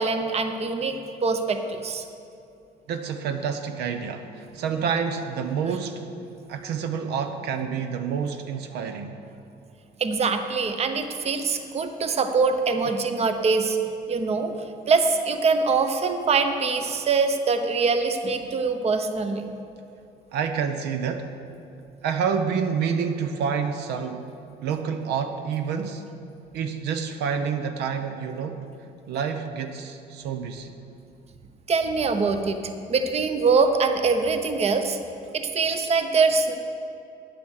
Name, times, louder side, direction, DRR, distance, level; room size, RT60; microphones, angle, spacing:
voice 1, 0.0-2.0 10.0-13.8 14.1-14.5 14.9-19.5 31.7-32.6 32.9-35.0 35.3-36.6, right 4 dB, 40° right, 7 dB, 0.9 m, -23 dB
voice 2, 2.9-6.1 6.5-9.2 20.3-21.3 22.0-24.3 24.6-26.0 26.5-28.6 29.1-30.7, right 6 dB, 80° right, 7 dB, 0.8 m, -28 dB
9.3 x 9.1 x 6.4 m, 2.6 s
cardioid pair, 110°, 17 cm